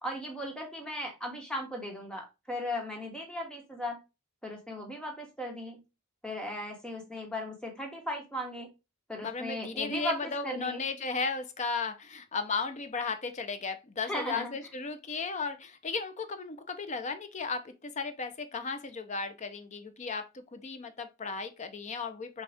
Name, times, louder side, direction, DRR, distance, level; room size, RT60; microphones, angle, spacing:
voice 1, 0.0-4.0 4.4-5.8 6.2-8.7 9.1-10.8 14.0-14.5, left 1 dB, 5° left, 1.2 m, -37 dB
voice 2, 9.2-22.4, left 4 dB, 35° left, 0.6 m, -35 dB
6.1 x 2.4 x 3.4 m
head